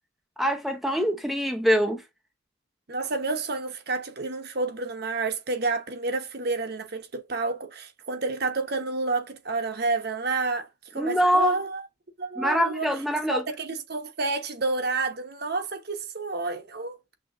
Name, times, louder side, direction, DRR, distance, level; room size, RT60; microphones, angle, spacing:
voice 1, 0.4-2.0 11.0-11.6 12.4-13.4, equal, ahead, 0.6 m, -24 dB
voice 2, 2.9-11.9 12.2-12.9 13.3-17.0, right 3 dB, 55° right, 1.0 m, -29 dB
6.4 x 3.0 x 2.5 m
head